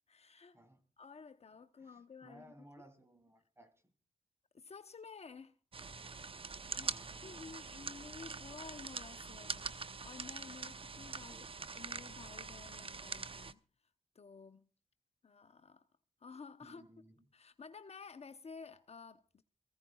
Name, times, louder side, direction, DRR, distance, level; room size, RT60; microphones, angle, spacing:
voice 1, 0.1-0.6 1.0-2.4 4.5-5.6 6.8-6.9 7.2-9.8 10.0-11.4 11.8-13.6 14.1-14.7 15.2-15.9 16.2-16.8 17.3-19.4, left 5 dB, 50° left, 0.8 m, -52 dB
voice 2, 1.8-3.9 6.7-7.6 11.3-11.7 16.6-17.3, right 1 dB, 20° right, 3.2 m, -60 dB
sound 1, 5.7-13.5, right 4 dB, 45° right, 0.8 m, -44 dB
23.0 x 15.5 x 2.3 m
supercardioid pair, 45°, 14 cm